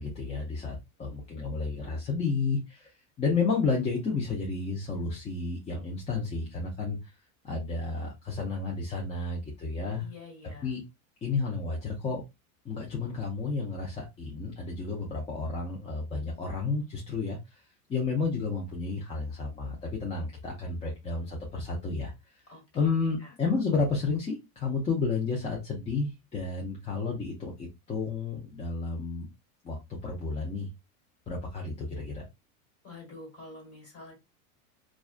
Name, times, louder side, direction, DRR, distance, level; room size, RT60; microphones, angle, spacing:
voice 1, 0.0-2.9 3.2-7.0 7.4-10.1 10.6-10.8 11.2-12.2 12.6-17.4 17.9-22.1 22.7-29.3 29.6-30.7 31.3-32.2, left 4 dB, 15° left, -2 dB, 0.5 m, -31 dB
voice 2, 10.0-10.7 22.5-23.3 32.8-34.1, left 3 dB, 30° left, 0 dB, 1.5 m, -48 dB
2.3 x 2.2 x 2.4 m, 0.22 s
supercardioid pair, 125°, 44 cm